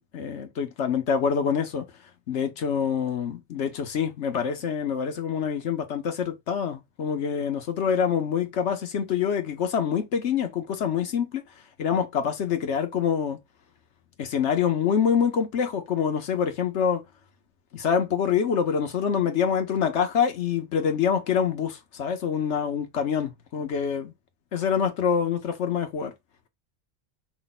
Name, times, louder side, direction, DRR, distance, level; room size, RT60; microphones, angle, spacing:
voice 1, 0.0-1.9 2.3-11.4 11.8-13.4 14.2-17.0 17.7-24.1 24.5-26.1, left 7 dB, 85° left, 1.2 m, -26 dB
5.3 x 2.2 x 4.0 m
omnidirectional pair, 1.1 m